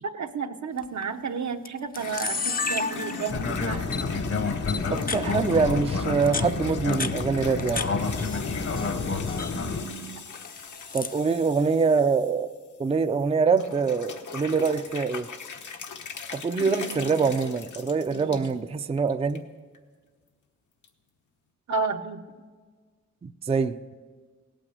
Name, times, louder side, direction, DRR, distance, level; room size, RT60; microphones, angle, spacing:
voice 1, 0.0-3.9 9.5-10.2 16.6-17.3 18.1-18.5 21.7-22.2, right 5 dB, 75° right, 7 dB, 0.9 m, -32 dB
Camera, 0.8-1.0 1.6-1.7 1.9-3.5 3.9-4.0 4.7-5.2 6.1-7.9 8.2-8.9 9.2-9.5 10.3-11.2, left 4 dB, 30° left, 0.6 m, -32 dB
sound 1, 1.9-13.2 13.6-18.5 19.0-19.4 19.7-19.8 20.8-20.9, left 5 dB, 85° left, 1.2 m, -40 dB
Fixed-wing aircraft airplane, 3.3-9.8, left 4 dB, 55° left, 1.0 m, -29 dB
voice 2, 4.9-7.8 10.9-12.5 12.8-15.3 16.3-19.4 23.2-23.8, right 5 dB, 20° right, 10 dB, 0.4 m, -24 dB
17.5 x 9.0 x 8.0 m, 1.5 s
wide cardioid pair, 135°, 29 cm